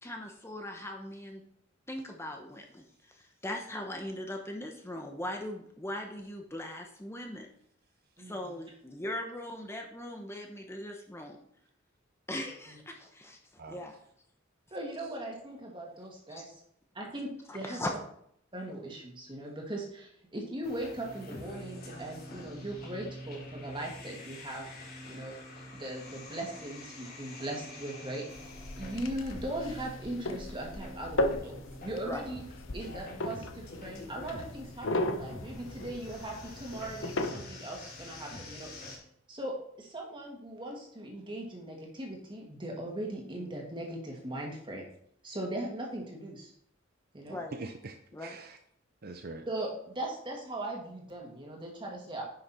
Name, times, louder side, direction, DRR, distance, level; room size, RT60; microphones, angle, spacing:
voice 1, 0.0-1.4 1.9-7.5 8.2-11.4 12.3-13.4 13.7-13.9 16.3-16.5 17.5-17.9 32.0-32.2 47.3-47.5 48.1-48.4, left 1 dB, 15° left, 3 dB, 0.9 m, -39 dB
voice 2, 8.2-8.5 12.7-12.8 14.7-16.5 16.9-18.0 18.5-24.7 25.1-25.3 25.7-28.3 28.8-32.4 32.7-38.7 39.3-44.9 45.2-46.5 47.1-47.4 49.5-52.2, right 1 dB, 25° right, 0 dB, 2.3 m, -39 dB
sound 1, 20.6-39.0, left 1 dB, 50° left, 3.7 m, -46 dB
sound 2, 28.3-37.3, left 1 dB, 65° left, 0.9 m, -36 dB
voice 3, 47.3-48.6 49.0-49.5, right 3 dB, 50° right, 6 dB, 0.8 m, -44 dB
10.0 x 6.4 x 4.4 m, 0.68 s
head